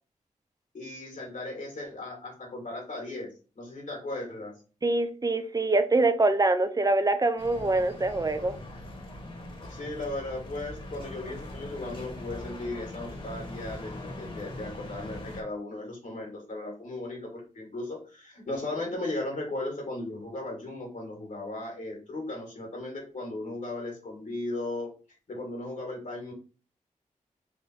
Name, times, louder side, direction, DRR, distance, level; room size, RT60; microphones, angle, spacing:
voice 1, 0.7-3.3 3.6-4.6 9.7-26.3, left 2 dB, 65° left, 1.8 m, -36 dB
voice 2, 4.8-8.5, right 2 dB, 25° right, 0.6 m, -24 dB
sound 1, 7.4-15.4, left 1 dB, 40° left, 1.4 m, -41 dB
3.6 x 2.6 x 4.2 m
cardioid pair, 65°, 14 cm